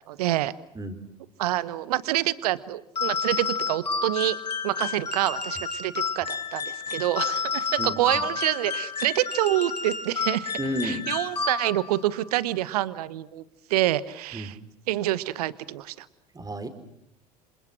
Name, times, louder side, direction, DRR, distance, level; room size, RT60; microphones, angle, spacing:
voice 1, 0.1-0.5 1.4-4.4 4.6-10.6 10.8-13.4 13.7-14.6 14.9-16.1, right 15 dB, 70° right, 18 dB, 1.1 m, -27 dB
sound 1, 3.0-12.0, left 5 dB, 90° left, 1.9 m, -30 dB
voice 2, 10.6-11.0 14.3-14.5 16.3-16.7, right 1 dB, 20° right, 9 dB, 4.5 m, -31 dB
29.0 x 27.5 x 6.1 m, 0.77 s
figure-of-eight pair, 70°, 21 cm